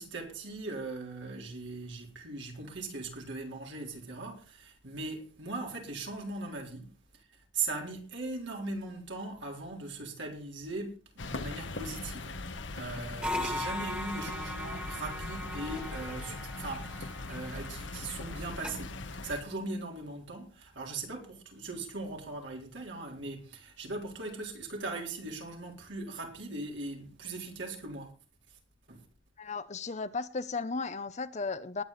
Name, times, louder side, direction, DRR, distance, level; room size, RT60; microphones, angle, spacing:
voice 1, 0.0-6.8 7.5-12.4 12.7-28.1 28.9-29.1, right 3 dB, 70° right, 4.1 m, -39 dB
sound 1, 11.2-19.4, left 3 dB, 75° left, 1.3 m, -40 dB
sound 2, 13.2-18.7, left 1 dB, 5° right, 1.9 m, -39 dB
voice 2, 29.4-31.8, left 4 dB, 40° left, 0.8 m, -35 dB
19.5 x 8.5 x 4.2 m
head